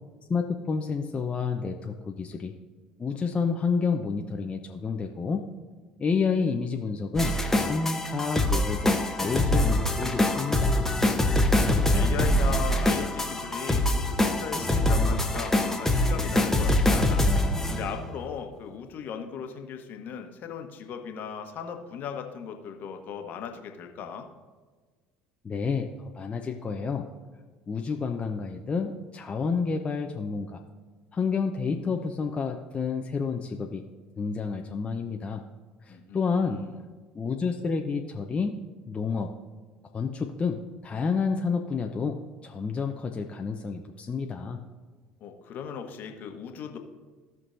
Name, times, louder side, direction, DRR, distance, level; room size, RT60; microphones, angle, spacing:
voice 1, 0.3-2.5 3.0-5.4 6.0-7.4 7.6-10.9 25.4-25.9 26.1-27.1 27.7-30.6 31.1-33.8 34.2-35.4 35.8-36.7 37.1-38.6 38.9-39.3 39.9-44.6, left 5 dB, 30° left, 3 dB, 0.7 m, -29 dB
sound 1, 7.1-18.1, left 1 dB, 10° left, 1.1 m, -24 dB
voice 2, 11.5-24.3 35.9-36.7 45.2-46.8, left 7 dB, 50° left, 5 dB, 1.2 m, -38 dB
16.5 x 6.1 x 2.7 m, 1.4 s
hypercardioid pair, 65°, 4 cm